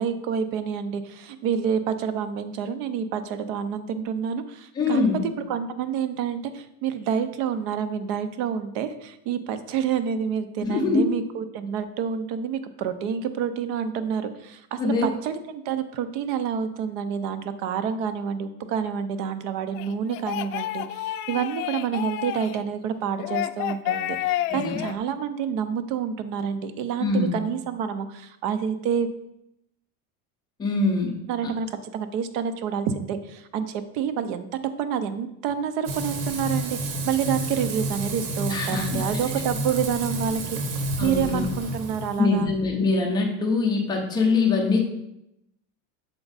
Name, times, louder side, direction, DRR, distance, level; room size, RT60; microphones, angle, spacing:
voice 1, 0.0-5.0 5.5-29.1 31.3-42.5, right 7 dB, 45° right, 11 dB, 0.5 m, -28 dB
voice 2, 4.8-5.2 10.6-11.1 14.8-15.1 24.5-24.8 27.0-27.3 30.6-31.2 31.4-31.5 38.5-39.0 41.0-41.4 42.2-44.8, left 3 dB, 10° left, 1 dB, 0.5 m, -23 dB
sound 1, 19.7-22.6 23.2-24.9, left 13 dB, 80° left, 0.5 m, -30 dB
Frying (food), 35.9-42.2, right 2 dB, 80° right, 1.3 m, -30 dB
7.1 x 4.4 x 3.9 m, 0.83 s
cardioid pair, 175°, 43 cm